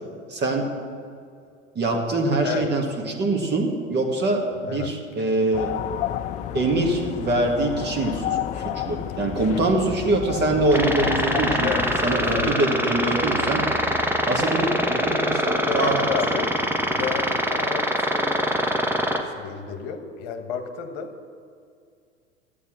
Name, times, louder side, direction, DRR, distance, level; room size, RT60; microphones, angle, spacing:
voice 1, 0.3-0.8 1.8-5.7 6.5-11.7 12.0-13.7 14.3-16.4, right 2 dB, 30° right, 2 dB, 2.0 m, -24 dB
voice 2, 4.5-4.9 11.6-11.9 12.2-12.5 15.3-18.5 19.1-21.3, left 7 dB, 50° left, 6 dB, 1.3 m, -31 dB
sound 1, 5.5-12.6, left 11 dB, 20° left, 0.3 m, -31 dB
sound 2, 10.7-19.2, equal, 5° right, 1.0 m, -24 dB
13.5 x 8.6 x 6.3 m, 2.3 s
figure-of-eight pair, 80°, 37 cm